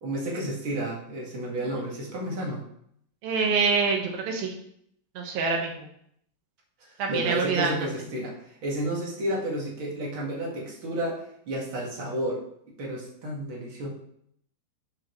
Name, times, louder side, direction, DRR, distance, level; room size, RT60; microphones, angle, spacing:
voice 1, 0.0-2.6 6.9-12.4 12.8-13.9, right 1 dB, 40° right, -2 dB, 2.3 m, -31 dB
voice 2, 3.2-4.5 5.2-5.9 7.0-7.8, right 4 dB, 80° right, 1 dB, 3.2 m, -26 dB
12.0 x 5.8 x 3.2 m, 0.70 s
omnidirectional pair, 4.1 m